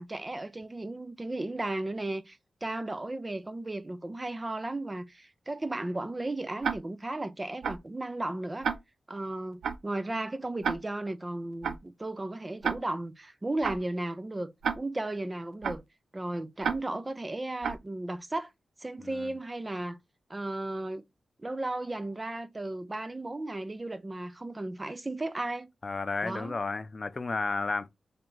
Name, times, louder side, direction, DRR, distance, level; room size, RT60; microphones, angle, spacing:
voice 1, 0.0-8.7 9.1-15.8 16.1-18.5 18.8-20.0 20.3-21.0 21.4-25.7 26.2-26.5, right 2 dB, 25° right, 0.6 m, -35 dB
Tick-tock, 6.6-6.8 7.6-7.8 8.6-8.8 9.6-9.8 10.6-10.8 11.6-11.8 12.6-12.8 13.6-13.8 14.6-14.8 15.6-15.8 16.6-16.8 17.6-17.8, right 6 dB, 90° right, 0.4 m, -29 dB
voice 2, 19.0-19.4 25.8-27.9, left 3 dB, 45° left, 0.5 m, -32 dB
3.3 x 2.9 x 3.8 m
cardioid pair, 70°, 0 cm